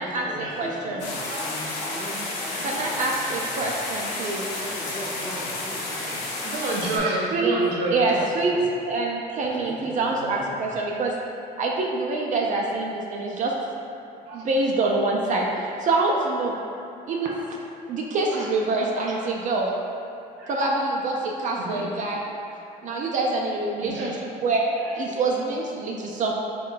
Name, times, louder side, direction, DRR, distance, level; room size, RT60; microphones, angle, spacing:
voice 1, 0.0-3.8 4.3-6.2 8.0-8.6 9.5-10.8, left 1 dB, 25° left, -5 dB, 0.8 m, -39 dB
voice 2, 0.6-1.0 2.6-4.4 7.3-7.5 7.9-8.5 8.9-11.1 11.6-13.5 14.3-16.6 17.1-17.3 17.9-19.7 20.5-22.2 22.8-26.3, right 3 dB, 50° right, -1 dB, 0.4 m, -25 dB
sound 1, 1.0-7.0, left 2 dB, 90° left, 0.7 m, -31 dB
voice 3, 6.1-8.0 14.3-14.4 18.3-18.4 20.4-20.5 21.6-21.8 23.8-24.1, right 2 dB, 85° right, -3 dB, 0.7 m, -29 dB
3.7 x 2.2 x 3.8 m, 2.7 s
cardioid pair, 110°, 17 cm